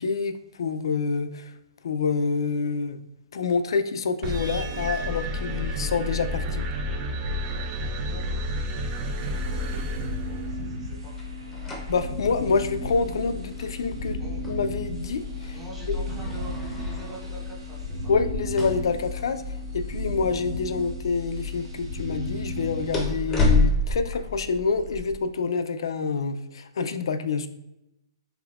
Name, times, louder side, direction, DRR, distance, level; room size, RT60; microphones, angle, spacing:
voice 1, 0.0-1.5 1.8-3.0 3.3-6.7 11.9-14.2 14.4-15.6 15.9-16.0 18.1-19.4 19.7-27.5, left 5 dB, 75° left, 10 dB, 0.3 m, -27 dB
sound 1, 4.2-10.8, equal, 30° right, 0.4 m, -30 dB
voice 2, 7.8-8.6 9.4-11.2 14.2-14.4 15.5-18.1, right 1 dB, 5° right, -7 dB, 1.4 m, -45 dB
sound 2, 9.2-23.1, left 1 dB, 80° right, 1.0 m, -34 dB
sound 3, 11.2-25.1, left 2 dB, 15° left, 0.7 m, -31 dB
3.4 x 3.4 x 2.4 m, 0.90 s
hypercardioid pair, 145°, 3 cm